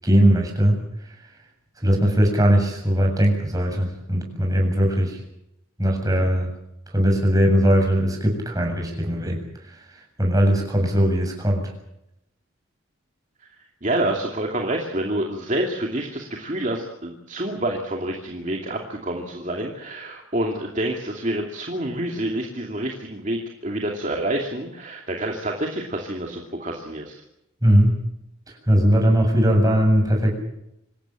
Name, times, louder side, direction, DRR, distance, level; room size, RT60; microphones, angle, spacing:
voice 1, 0.0-0.8 1.8-5.2 5.8-6.5 6.9-9.4 10.2-11.7 27.6-28.0 28.5-30.3, equal, 15° right, 1 dB, 7.4 m, -19 dB
voice 2, 13.8-27.1, right 1 dB, 35° right, 1 dB, 2.6 m, -27 dB
26.5 x 15.5 x 9.0 m, 0.82 s
head